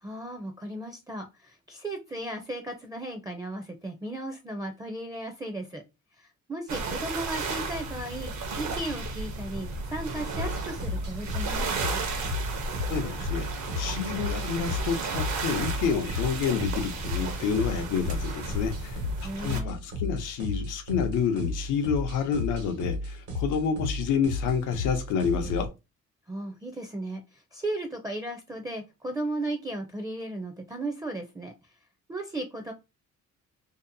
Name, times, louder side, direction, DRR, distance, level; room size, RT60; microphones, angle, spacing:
voice 1, 0.0-5.8 6.2-8.3 8.6-12.1 19.2-19.8 26.3-31.5 32.1-32.7, right 1 dB, 10° right, 0.4 m, -35 dB
sound 1, 6.7-19.6, right 3 dB, 65° right, 0.7 m, -34 dB
sound 2, 10.3-25.7, left 2 dB, 90° right, 1.2 m, -33 dB
voice 2, 12.9-13.5 13.7-19.0 19.4-25.7, left 6 dB, 90° left, 0.6 m, -29 dB
2.7 x 2.0 x 2.5 m
cardioid pair, 90°, 30 cm